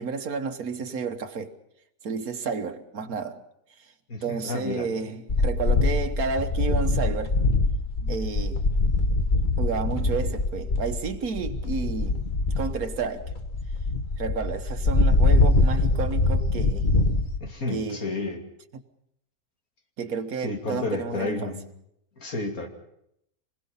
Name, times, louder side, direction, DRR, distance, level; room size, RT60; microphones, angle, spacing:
voice 1, 0.0-1.5 2.0-3.4 4.2-7.4 8.0-8.6 9.6-12.2 12.6-13.3 14.2-16.9 17.7-18.0 20.0-21.5, right 5 dB, 75° right, 1.8 m, -31 dB
voice 2, 4.1-4.9 17.4-18.4 20.4-21.7 22.2-22.7, left 3 dB, 70° left, 3.0 m, -31 dB
sound 1, 5.3-17.4, left 2 dB, 35° left, 1.5 m, -23 dB
26.5 x 20.5 x 5.7 m
omnidirectional pair, 1.5 m